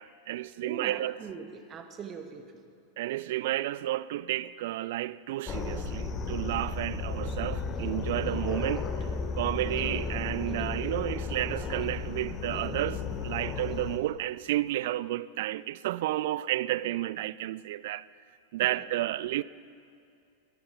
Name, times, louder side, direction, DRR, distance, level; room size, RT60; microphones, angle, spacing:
voice 1, 0.0-1.2 3.0-9.1 9.3-18.0 18.5-19.4, right 15 dB, 55° right, 0.3 m, -31 dB
voice 2, 0.6-2.5 18.6-18.8, right 6 dB, 25° right, 1.3 m, -42 dB
sound 1, 5.5-14.0, left 4 dB, 25° left, 1.2 m, -34 dB
20.0 x 10.5 x 5.8 m
figure-of-eight pair, 90°, 0 cm